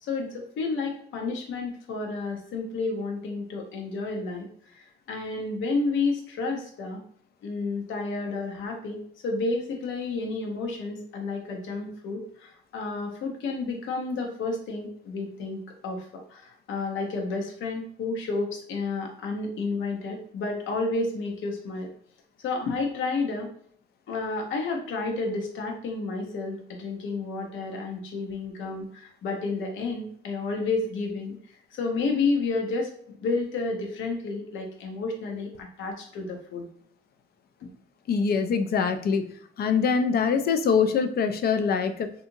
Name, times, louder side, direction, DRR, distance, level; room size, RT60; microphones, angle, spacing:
voice 1, 0.0-4.5 4.7-7.0 7.4-21.9 22.4-23.5 24.1-31.4 31.7-32.9 33.2-36.7 37.6-37.7, left 3 dB, 75° left, 2 dB, 0.8 m, -31 dB
voice 2, 38.1-39.3 39.6-42.1, left 6 dB, 50° left, 9 dB, 0.4 m, -24 dB
2.7 x 2.5 x 2.6 m, 0.63 s
cardioid pair, 90°, 20 cm